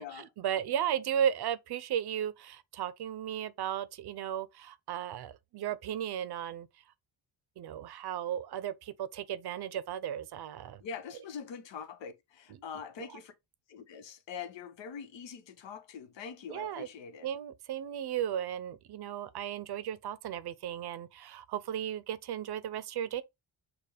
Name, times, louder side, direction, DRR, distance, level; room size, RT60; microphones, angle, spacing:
voice 1, 0.0-6.7 7.6-10.8 13.1-13.2 16.5-16.9 17.2-23.2, right 10 dB, 65° right, 0.6 m, -35 dB
voice 2, 10.8-13.3 13.7-17.3, left 6 dB, 90° left, 0.9 m, -43 dB
6.6 x 2.2 x 3.4 m
wide cardioid pair, 135°, 43 cm